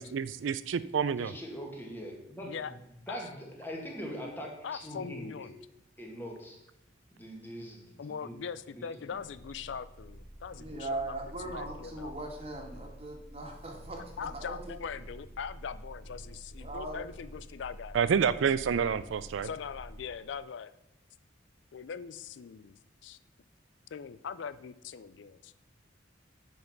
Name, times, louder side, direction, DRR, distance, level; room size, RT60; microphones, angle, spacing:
voice 1, 0.0-1.3 17.9-19.5, right 7 dB, 80° right, 15 dB, 0.4 m, -28 dB
voice 2, 1.2-2.6 3.1-5.5 6.0-6.6 7.1-8.4 8.7-8.8, equal, 10° left, 0 dB, 1.9 m, -42 dB
voice 3, 4.6-5.5 8.0-12.1 14.2-18.0 19.4-20.7 21.7-23.2 23.9-25.5, left 6 dB, 70° left, 15 dB, 0.4 m, -41 dB
Purr, 9.1-20.4, equal, 35° left, 3.2 m, -48 dB
voice 4, 10.6-14.0 14.3-14.6 16.6-17.0, right 2 dB, 30° right, 1 dB, 1.8 m, -39 dB
9.4 x 5.4 x 5.9 m, 0.89 s
head